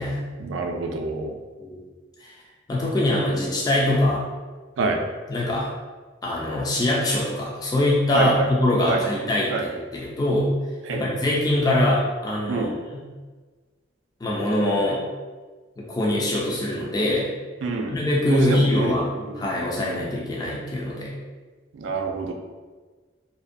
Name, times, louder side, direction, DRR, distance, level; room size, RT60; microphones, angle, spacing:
voice 1, 0.4-1.3 4.8-5.0 8.1-8.5 8.9-9.0 9.5-9.6 10.9-11.1 12.5-12.7 17.6-18.0 18.3-20.1 21.7-22.3, right 4 dB, 85° right, 3 dB, 0.3 m, -27 dB
voice 2, 2.7-4.2 5.3-5.7 6.2-10.5 10.9-12.7 12.9-13.0 14.2-15.0 15.8-17.3 17.9-21.1, left 1 dB, 20° left, -4 dB, 0.3 m, -23 dB
2.5 x 2.1 x 2.5 m, 1.4 s
head